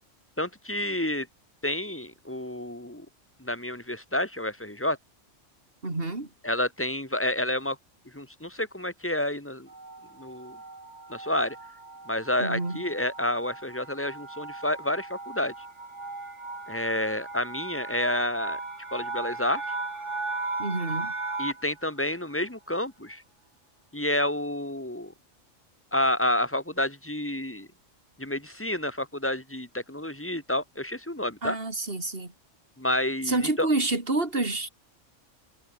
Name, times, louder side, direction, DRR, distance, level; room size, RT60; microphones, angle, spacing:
voice 1, 0.4-1.3 1.6-3.1 3.4-5.0 6.4-7.8 8.1-9.7 10.2-10.6 11.1-11.6 12.1-15.5 16.7-18.6 18.9-19.6 21.4-23.2 23.9-25.1 25.9-27.7 28.2-31.6 32.8-33.7, left 1 dB, 10° left, 2.2 m, -29 dB
voice 2, 5.8-6.3 12.4-12.8 20.6-21.1 31.4-32.3 33.3-34.7, right 2 dB, 50° right, 4.1 m, -28 dB
sound 1, 9.7-21.8, right 3 dB, 65° right, 3.8 m, -37 dB
omnidirectional pair, 1.3 m